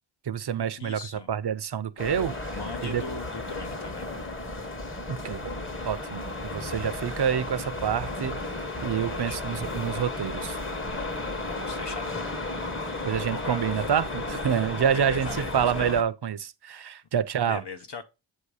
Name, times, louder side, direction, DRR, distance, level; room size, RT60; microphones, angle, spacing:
voice 1, 0.3-1.0 1.3-2.5 2.8-3.0 5.1-5.5 5.9-8.4 8.8-10.6 13.0-17.6, right 8 dB, 60° right, 0.5 m, -27 dB
voice 2, 0.8-1.3 2.5-4.1 9.1-9.5 11.4-12.3 12.9-13.1 13.3-13.7 14.9-15.9 17.5-18.0, left 4 dB, 60° left, 0.8 m, -39 dB
sound 1, 2.0-16.0, left 2 dB, 25° left, 1.0 m, -34 dB
7.9 x 2.7 x 4.8 m
wide cardioid pair, 45°, 46 cm